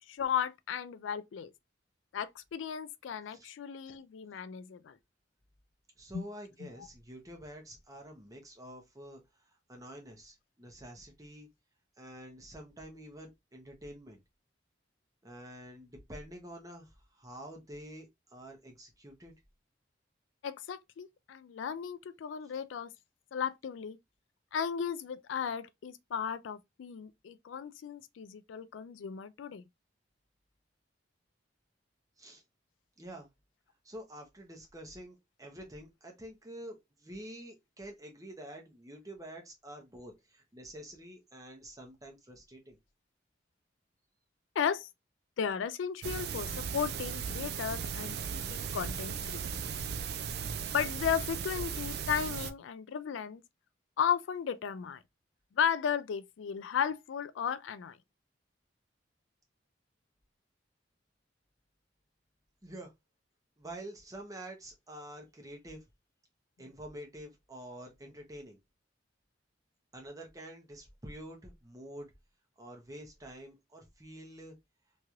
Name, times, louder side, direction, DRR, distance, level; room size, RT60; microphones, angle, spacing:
voice 1, 0.1-1.5 2.1-5.0 6.1-6.2 20.4-22.9 23.3-24.0 24.5-29.6 44.6-44.9 45.4-49.4 50.7-53.4 54.0-55.0 55.6-58.0, left 7 dB, 85° left, 0.3 m, -35 dB
voice 2, 6.0-11.5 12.0-14.2 15.2-19.3 32.2-32.4 33.0-33.3 33.8-42.8 62.6-62.9 63.6-65.8 66.6-68.6 69.9-72.1 72.6-74.5, right 1 dB, 20° right, 0.8 m, -48 dB
sound 1, 46.0-52.5, right 7 dB, 55° right, 0.3 m, -37 dB
3.0 x 2.9 x 2.4 m
head